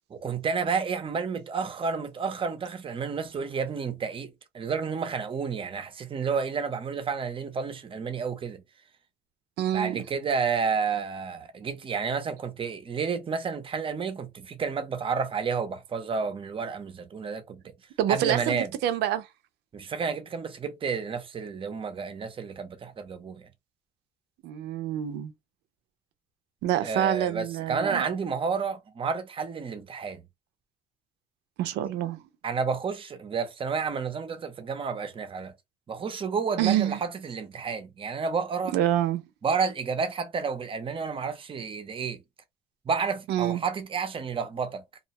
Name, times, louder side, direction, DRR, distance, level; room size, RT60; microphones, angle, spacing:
voice 1, 0.1-8.6 9.7-17.7 18.1-18.7 19.7-23.5 26.8-30.2 32.4-35.5 35.9-38.8 39.4-42.2 42.8-44.8, right 5 dB, 30° right, 0.6 m, -30 dB
voice 2, 9.6-10.0 18.0-19.3 24.4-25.3 26.6-28.1 31.6-32.2 36.6-37.0 38.7-39.2 43.3-43.6, right 11 dB, 80° right, 0.5 m, -27 dB
2.4 x 2.2 x 2.8 m
cardioid pair, 110°, 17 cm